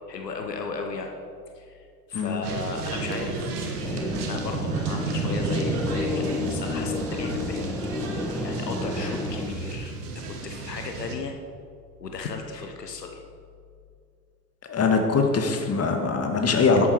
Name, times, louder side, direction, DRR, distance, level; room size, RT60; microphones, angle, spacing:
voice 1, 0.1-1.1 1.5-7.7 8.4-11.3 12.0-13.2, left 4 dB, 90° left, 3 dB, 0.9 m, -35 dB
sound 1, 2.4-11.1, right 4 dB, 70° right, 1.4 m, -31 dB
sound 2, 3.8-9.5, left 3 dB, 5° left, 0.7 m, -31 dB
voice 2, 14.7-16.9, left 4 dB, 30° left, 4 dB, 1.7 m, -22 dB
11.0 x 8.0 x 4.7 m, 2.3 s
figure-of-eight pair, 60°, 47 cm